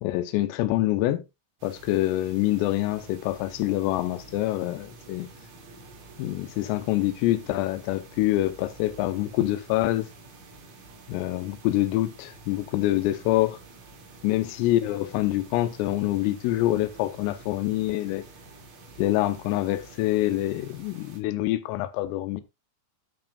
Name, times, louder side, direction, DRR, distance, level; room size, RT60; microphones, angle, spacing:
voice 1, 0.0-1.2 1.6-5.3 6.2-10.1 11.1-13.6 14.2-18.2 19.0-22.4, left 15 dB, 90° left, 3.4 m, -26 dB
sound 1, 1.6-21.2, right 3 dB, 45° right, 2.9 m, -49 dB
13.0 x 6.2 x 2.4 m
omnidirectional pair, 6.0 m